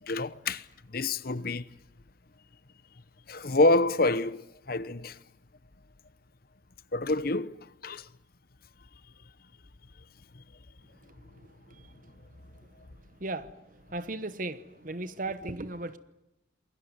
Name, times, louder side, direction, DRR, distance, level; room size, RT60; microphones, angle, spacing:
voice 1, 0.0-1.7 3.3-5.2 6.9-8.1, left 2 dB, 50° left, 1.0 m, -27 dB
voice 2, 13.9-14.6 14.8-16.0, right 2 dB, 40° right, 1.0 m, -35 dB
28.0 x 21.5 x 9.6 m
head